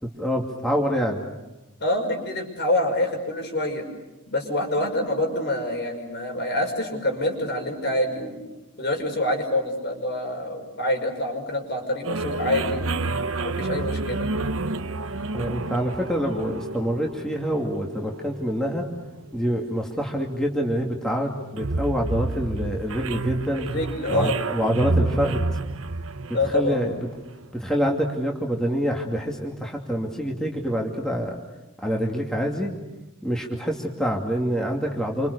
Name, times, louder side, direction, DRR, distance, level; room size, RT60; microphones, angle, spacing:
voice 1, 0.0-1.2 15.3-18.9 19.3-23.7 24.1-25.5 26.5-27.1 27.5-31.4 31.8-32.7 33.2-35.3, equal, 5° left, -1 dB, 2.6 m, -26 dB
voice 2, 1.8-3.9 4.3-8.4 8.8-13.0 13.4-14.3 23.6-24.4 26.3-26.8, left 1 dB, 55° left, 3 dB, 5.9 m, -26 dB
sound 1, 12.0-27.5, right 2 dB, 85° right, 1.1 m, -30 dB
29.0 x 26.5 x 6.8 m, 1.0 s
head